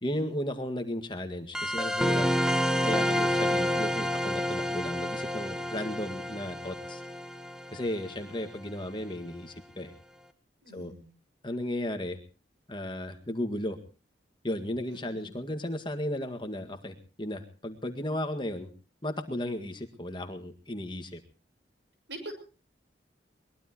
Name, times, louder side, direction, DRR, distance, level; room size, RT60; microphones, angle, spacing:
voice 1, 0.0-2.3 2.8-7.0 7.7-9.9 10.7-10.9 11.4-12.2 12.7-13.8 14.4-18.7 19.0-21.2, left 1 dB, 25° left, 6 dB, 1.8 m, -35 dB
sound 1, 1.5-8.6, equal, 5° right, 1.0 m, -29 dB
voice 2, 10.6-11.1 14.9-15.3 22.1-22.3, right 1 dB, 75° right, 6 dB, 7.1 m, -44 dB
23.0 x 21.0 x 3.0 m, 0.36 s
head